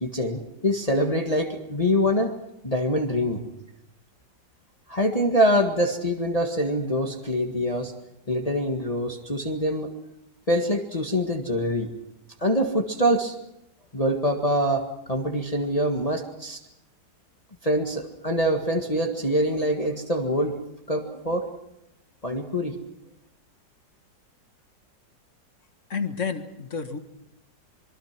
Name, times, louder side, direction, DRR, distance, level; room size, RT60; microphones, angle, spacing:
voice 1, 0.0-2.3 2.6-3.4 4.9-7.9 8.3-9.9 10.5-11.9 12.4-13.3 13.9-16.6 17.6-20.6 20.9-21.5 22.2-22.8, equal, 20° left, 3 dB, 1.8 m, -24 dB
voice 2, 25.9-27.0, left 5 dB, 45° left, 8 dB, 1.9 m, -30 dB
26.0 x 23.5 x 6.0 m, 0.84 s
omnidirectional pair, 2.0 m